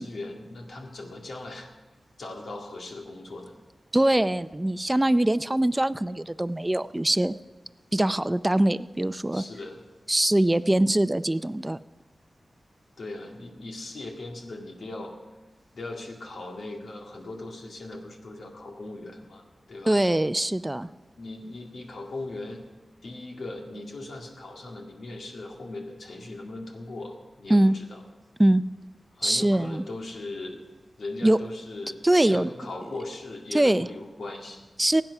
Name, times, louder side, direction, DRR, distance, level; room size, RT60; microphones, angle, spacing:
voice 1, 0.0-1.7 2.2-3.5 9.3-9.8 13.0-15.2 15.7-20.0 21.2-22.6 23.0-27.1 27.4-28.0 29.1-30.6 31.0-34.7, left 2 dB, 85° left, 1 dB, 2.0 m, -39 dB
voice 2, 3.9-7.3 7.9-9.4 10.1-11.8 19.9-20.9 27.5-27.8 28.4-28.6 29.2-29.8 31.2-31.4 32.0-32.5 33.5-33.9 34.8-35.0, right 1 dB, 20° right, 14 dB, 0.4 m, -22 dB
16.0 x 9.2 x 6.0 m, 1.2 s
cardioid pair, 60°, 0 cm